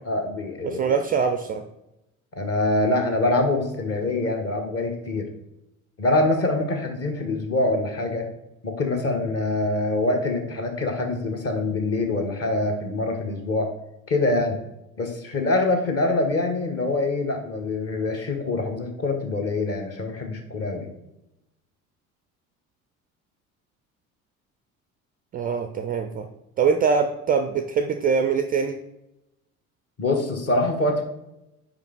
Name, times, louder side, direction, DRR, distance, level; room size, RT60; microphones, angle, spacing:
voice 1, 0.1-0.8 2.4-5.3 6.0-8.3 8.6-13.7 14.1-14.6 15.0-20.9 30.0-31.0, left 2 dB, 35° left, 3 dB, 1.2 m, -24 dB
voice 2, 0.6-1.6 25.3-26.3 26.6-28.8, right 6 dB, 20° right, 7 dB, 0.4 m, -23 dB
5.1 x 4.8 x 3.8 m, 0.89 s
figure-of-eight pair, 60°, 42 cm